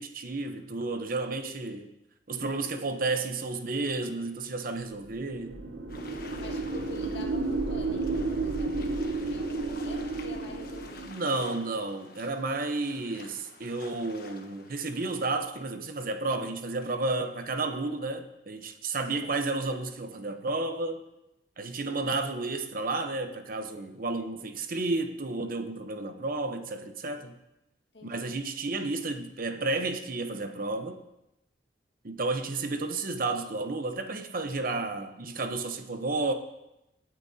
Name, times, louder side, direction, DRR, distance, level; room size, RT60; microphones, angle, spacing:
voice 1, 0.0-1.9 2.3-5.6 11.1-21.0 21.6-27.3 28.0-31.0 32.0-36.3, right 3 dB, 50° right, 0.9 m, -32 dB
voice 2, 2.3-2.8 6.4-8.9 9.2-11.3 19.1-19.4 27.9-28.3, left 2 dB, 85° left, 1.9 m, -47 dB
sound 1, 5.1-11.2, right 3 dB, 85° right, 1.0 m, -32 dB
sound 2, 5.9-15.1, left 3 dB, 55° left, 1.2 m, -50 dB
24.5 x 8.7 x 2.8 m
head